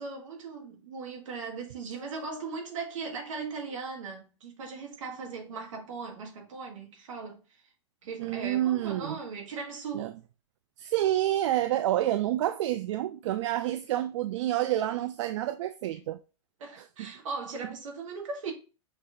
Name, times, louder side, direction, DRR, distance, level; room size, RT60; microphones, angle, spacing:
voice 1, 0.0-7.4 8.0-10.2 16.6-18.5, right 4 dB, 85° right, 1.9 m, -38 dB
voice 2, 8.2-9.2 9.9-10.1 10.8-16.2 16.8-17.1, right 13 dB, 65° right, 0.4 m, -28 dB
5.9 x 3.1 x 2.7 m
supercardioid pair, 150°, 16 cm